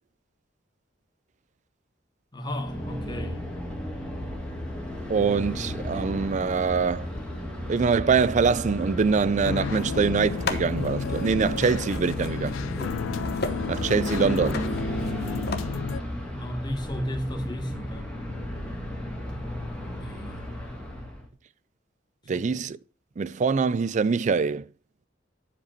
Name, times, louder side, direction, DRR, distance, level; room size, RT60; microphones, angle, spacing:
voice 1, 2.3-3.4 16.3-18.1 19.9-20.4 22.3-22.5, equal, 25° left, 1.4 m, -34 dB
sound 1, 2.5-21.3, equal, 5° left, 1.8 m, -33 dB
voice 2, 5.1-7.1 7.7-12.6 13.7-14.6 22.3-22.8 23.2-24.7, right 5 dB, 40° right, 0.4 m, -24 dB
sound 2, 9.4-16.0, left 6 dB, 85° left, 0.4 m, -33 dB
sound 3, 10.2-15.6, left 3 dB, 55° left, 1.0 m, -37 dB
9.6 x 5.2 x 4.4 m
head